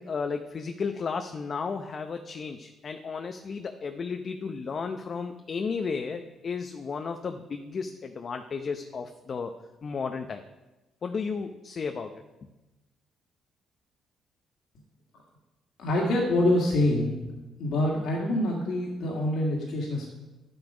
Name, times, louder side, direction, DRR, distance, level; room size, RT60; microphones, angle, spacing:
voice 1, 0.0-9.5 9.8-10.4 11.0-12.2, left 5 dB, 50° left, 6 dB, 0.8 m, -33 dB
voice 2, 15.8-17.2 17.6-20.1, left 1 dB, 75° left, -3 dB, 2.1 m, -25 dB
10.5 x 8.0 x 5.0 m, 1.1 s
supercardioid pair, 70°, 0 cm